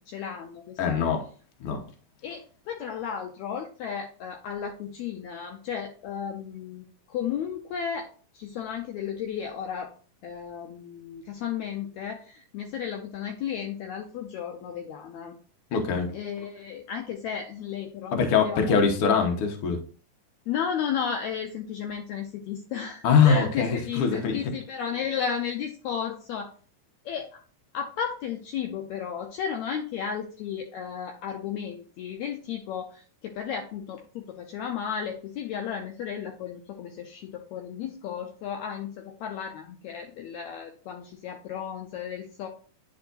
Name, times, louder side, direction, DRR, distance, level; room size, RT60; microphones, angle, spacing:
voice 1, 0.1-1.0 2.2-8.1 8.3-9.9 10.2-15.3 16.1-18.7 20.5-26.5 27.0-27.4 27.7-38.9 39.2-42.5, left 8 dB, 80° left, 3 dB, 1.7 m, -34 dB
voice 2, 0.8-1.2 1.6-1.8 15.7-16.1 18.1-19.8 23.0-24.5, left 6 dB, 60° left, 3 dB, 1.5 m, -23 dB
9.7 x 4.5 x 2.5 m, 0.41 s
omnidirectional pair, 3.7 m